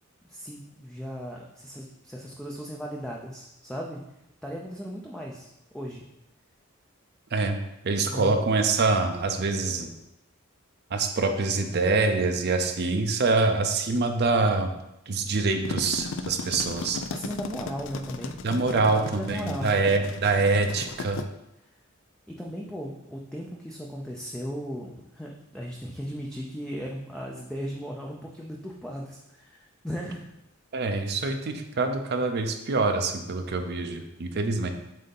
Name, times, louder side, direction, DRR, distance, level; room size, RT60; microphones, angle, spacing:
voice 1, 0.2-4.0 4.4-6.0 8.1-8.4 17.1-18.4 18.7-19.8 22.3-30.2, equal, 5° left, -2 dB, 0.5 m, -37 dB
voice 2, 7.8-9.9 10.9-14.7 15.1-17.0 18.4-21.2 30.7-34.7, right 3 dB, 50° right, 6 dB, 0.6 m, -25 dB
sound 1, 15.6-21.2, left 3 dB, 65° left, 0.4 m, -36 dB
7.6 x 2.8 x 5.3 m, 0.88 s
head